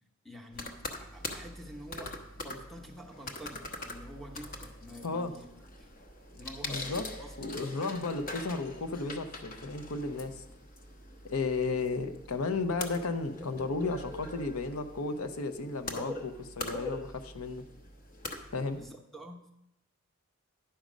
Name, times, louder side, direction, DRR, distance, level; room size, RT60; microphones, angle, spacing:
voice 1, 0.2-0.7 1.0-5.5 5.8-5.9 6.3-7.3 7.6-7.9 18.7-19.5, equal, ahead, 3 dB, 0.8 m, -48 dB
sound 1, 0.5-18.9, left 2 dB, 40° left, 0.8 m, -43 dB
voice 2, 6.6-7.0 7.4-10.3 11.2-17.6 18.5-18.8, left 3 dB, 80° left, 10 dB, 0.7 m, -34 dB
10.0 x 5.2 x 6.1 m, 0.86 s
head